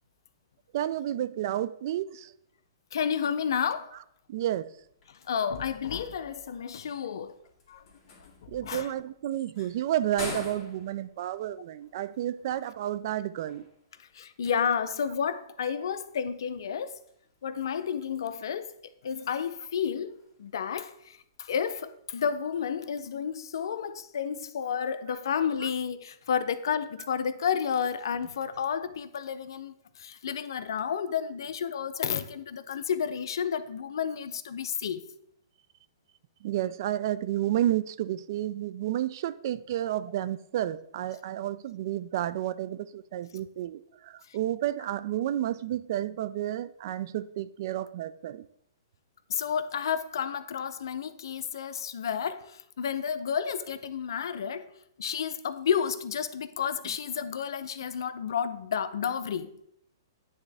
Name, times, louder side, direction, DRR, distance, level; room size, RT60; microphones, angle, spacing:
voice 1, 0.7-2.3 4.3-4.7 8.5-13.6 36.4-48.4, right 12 dB, 50° right, 0.3 m, -31 dB
voice 2, 2.9-3.9 5.1-7.3 7.7-7.8 8.6-8.9 14.1-17.0 17.4-18.7 19.0-35.0 49.3-54.7 55.0-59.5, left 7 dB, 70° left, 0.5 m, -31 dB
sound 1, 4.7-24.2, left 3 dB, 30° left, 1.9 m, -49 dB
9.7 x 3.5 x 3.4 m
hypercardioid pair, 140°, 2 cm